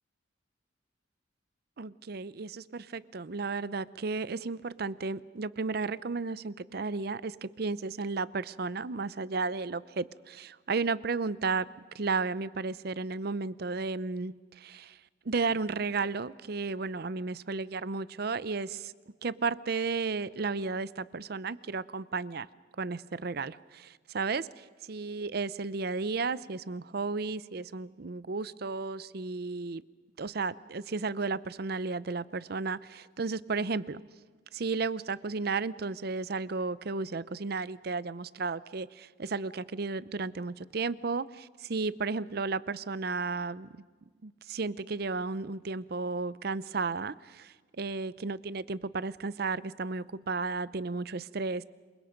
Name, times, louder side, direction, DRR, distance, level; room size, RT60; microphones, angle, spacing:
voice 1, 1.8-11.7 11.9-15.0 15.3-18.9 19.2-22.5 22.8-29.8 30.2-34.0 34.5-43.7 44.2-51.6, right 4 dB, 55° right, 18 dB, 0.6 m, -33 dB
27.5 x 23.5 x 5.2 m, 1.5 s
head